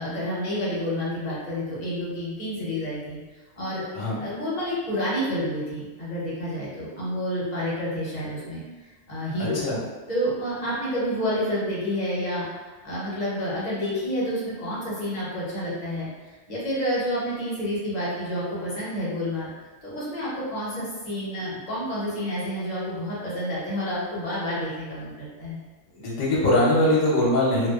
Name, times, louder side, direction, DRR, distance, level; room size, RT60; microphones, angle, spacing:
voice 1, 0.0-3.2 3.6-3.9 4.2-9.6 10.1-19.5 19.8-25.6, equal, 40° left, -8 dB, 0.8 m, -29 dB
voice 2, 25.9-27.7, left 1 dB, 80° left, -5 dB, 1.0 m, -22 dB
2.3 x 2.3 x 2.3 m, 1.3 s
omnidirectional pair, 1.2 m